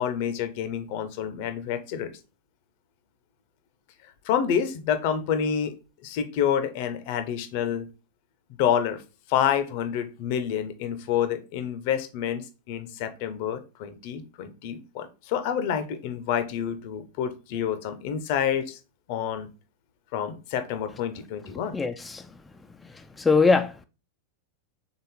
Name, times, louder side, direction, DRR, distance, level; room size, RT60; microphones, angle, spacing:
voice 1, 0.0-2.1 4.2-5.7 6.0-7.9 8.6-9.0 9.3-18.8 19.1-19.5 20.1-21.8, left 8 dB, 45° left, 0.6 m, -28 dB
voice 2, 21.7-22.3 22.8-23.9, left 4 dB, 10° left, 0.3 m, -23 dB
4.1 x 3.7 x 3.5 m
figure-of-eight pair, 90°, 0 cm